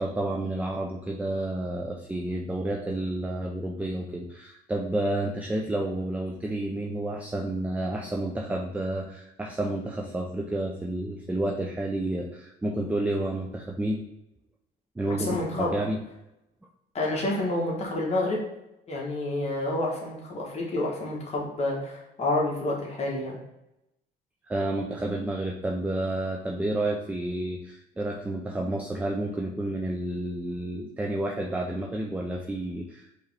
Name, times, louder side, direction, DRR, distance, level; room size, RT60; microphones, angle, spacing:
voice 1, 0.0-14.0 15.0-16.0 24.5-33.1, right 1 dB, 10° right, 0 dB, 0.5 m, -30 dB
voice 2, 15.2-15.7 16.9-18.4 18.9-23.4, left 2 dB, 40° left, -2 dB, 1.3 m, -29 dB
4.8 x 3.1 x 3.3 m, 0.89 s
cardioid pair, 110°, 17 cm